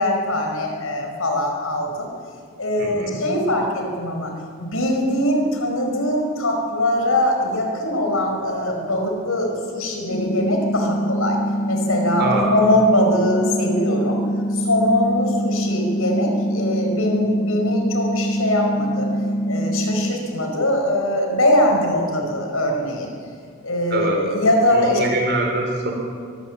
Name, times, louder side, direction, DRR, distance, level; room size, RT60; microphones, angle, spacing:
voice 1, 0.0-2.1 2.6-4.3 4.6-11.4 11.7-14.2 14.5-19.1 19.5-23.1 23.6-25.0 25.8-25.9, left 1 dB, 75° left, 2 dB, 5.0 m, -22 dB
voice 2, 2.8-3.2 12.2-12.5 23.9-24.2 24.7-25.9, right 2 dB, 50° right, 1 dB, 4.8 m, -23 dB
sound 1, 10.1-20.1, equal, 50° left, 1.1 m, -24 dB
23.0 x 16.0 x 7.5 m, 2.1 s
head